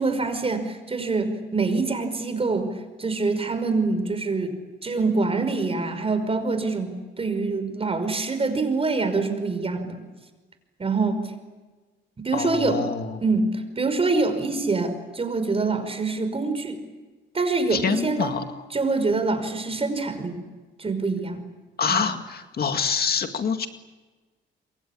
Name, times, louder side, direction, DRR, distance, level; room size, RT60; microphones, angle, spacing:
voice 1, 0.0-2.7 3.0-4.6 4.8-10.0 10.8-11.2 12.2-12.8 13.2-16.8 17.3-18.3 18.7-20.4 20.8-21.4 21.9-22.0, right 3 dB, 30° right, 9 dB, 5.4 m, -25 dB
voice 2, 12.3-13.2 17.7-18.7 21.8-23.7, left 6 dB, 50° left, 7 dB, 2.1 m, -26 dB
27.5 x 24.0 x 8.7 m, 1.3 s
cardioid pair, 90°, 20 cm